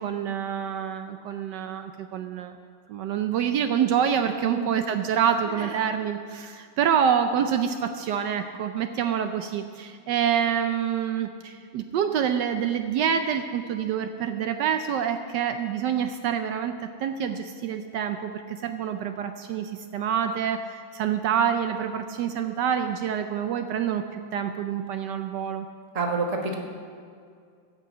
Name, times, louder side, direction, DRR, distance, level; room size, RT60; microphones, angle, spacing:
voice 1, 0.0-2.6 2.9-16.7 17.0-25.7, right 8 dB, 75° right, 7 dB, 1.2 m, -27 dB
voice 2, 25.9-26.6, right 3 dB, 25° right, 2 dB, 1.0 m, -27 dB
14.5 x 5.6 x 8.0 m, 2.2 s
omnidirectional pair, 2.0 m